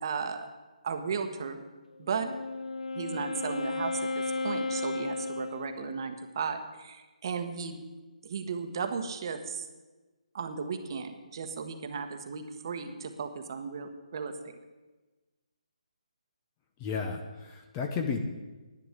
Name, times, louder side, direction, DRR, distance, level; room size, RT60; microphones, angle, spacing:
voice 1, 0.0-0.5 0.8-1.6 2.0-2.3 2.9-7.8 8.2-9.6 10.3-14.5, right 5 dB, 35° right, 7 dB, 1.2 m, -35 dB
Wind instrument woodwind instrument, 2.0-6.3, left 3 dB, 75° left, 0.7 m, -34 dB
voice 2, 16.8-18.2, left 5 dB, 15° left, 5 dB, 0.7 m, -33 dB
11.0 x 9.1 x 8.1 m, 1.2 s
hypercardioid pair, 170°, 4 cm